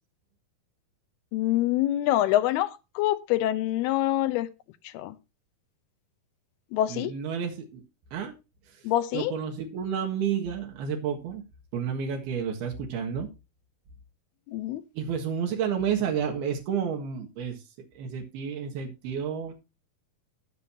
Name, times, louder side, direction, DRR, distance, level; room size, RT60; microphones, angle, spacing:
voice 1, 1.3-4.5 4.8-5.2 6.7-7.1 8.8-9.3 14.5-14.8, left 14 dB, 85° left, 2.7 m, -25 dB
voice 2, 6.9-7.8 8.1-8.3 8.7-11.4 11.7-13.3 15.0-17.6 18.0-19.5, right 7 dB, 80° right, 3.6 m, -31 dB
19.0 x 6.5 x 2.8 m
omnidirectional pair, 4.5 m